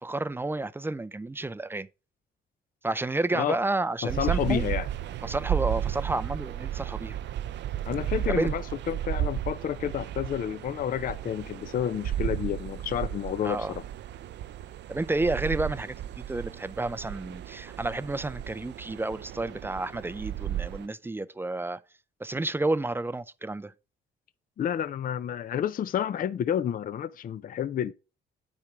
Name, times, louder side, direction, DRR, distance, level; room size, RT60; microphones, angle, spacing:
voice 1, 0.0-1.9 2.8-4.6 5.2-7.2 8.3-8.5 13.4-13.7 14.9-21.8 22.2-23.7, right 2 dB, 10° right, 0.4 m, -30 dB
voice 2, 4.0-4.9 7.9-13.8 24.6-27.9, left 9 dB, 45° left, 0.5 m, -30 dB
sound 1, 4.1-20.9, right 11 dB, 65° right, 0.5 m, -34 dB
8.7 x 4.6 x 5.0 m
cardioid pair, 90°, 20 cm